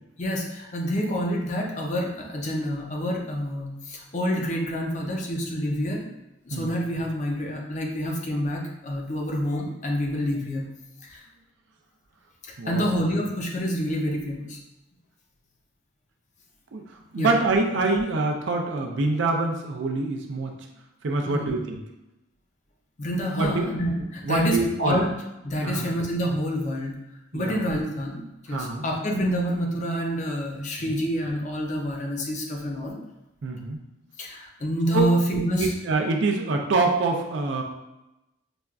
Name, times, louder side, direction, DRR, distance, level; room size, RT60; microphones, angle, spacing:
voice 1, 0.2-6.1 6.4-10.6 11.0-11.2 12.4-14.6 17.2-17.3 21.2-21.6 23.0-25.1 25.4-27.0 27.3-33.0 34.2-35.7, equal, 35° left, 0 dB, 0.5 m, -27 dB
voice 2, 12.6-12.9 16.7-16.9 17.1-20.6 21.0-21.8 23.4-23.7 24.2-25.0 25.6-25.9 27.3-27.6 28.5-28.8 30.8-31.0 33.4-33.8 34.9-35.1 35.6-37.6, right 3 dB, 65° right, 2 dB, 0.4 m, -25 dB
5.0 x 2.3 x 2.2 m, 0.96 s
head